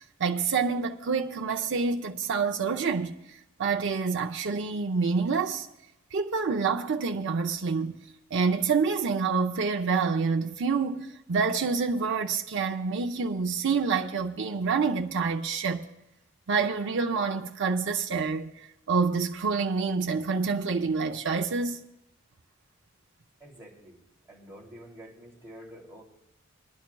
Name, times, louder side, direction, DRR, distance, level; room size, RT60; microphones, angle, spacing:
voice 1, 0.2-3.1 3.6-5.7 6.1-8.0 8.3-15.8 16.5-18.5 18.9-21.8, right 5 dB, 60° right, 0.6 m, -27 dB
voice 2, 23.4-24.0 24.3-26.0, equal, 10° right, 2.7 m, -48 dB
25.0 x 10.5 x 2.3 m
head